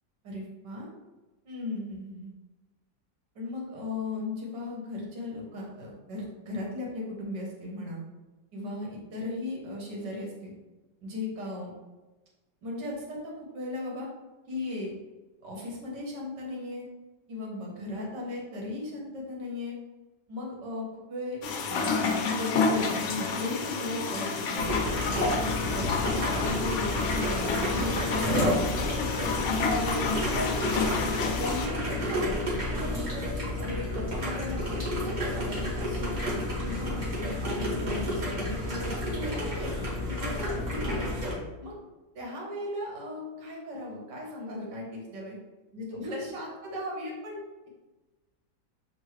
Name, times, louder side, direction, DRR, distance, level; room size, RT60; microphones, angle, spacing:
voice 1, 0.2-0.9 1.4-2.3 3.4-8.0 8.5-10.5 11.0-11.7 12.6-14.1 14.5-14.9 15.4-16.9 17.3-19.8 20.3-21.4 21.7-25.4 25.7-29.3 29.7-31.0 31.4-32.3 32.6-36.1 36.6-39.7 40.0-41.1 41.6-41.7 42.2-45.4 45.7-47.7, left 2 dB, 80° right, -3 dB, 1.8 m, -37 dB
sound 1, 21.4-31.7, left 4 dB, 75° left, 0.6 m, -29 dB
sound 2, 24.6-41.3, left 1 dB, 30° right, 1.1 m, -31 dB
6.9 x 2.4 x 3.2 m, 1.1 s
omnidirectional pair, 1.8 m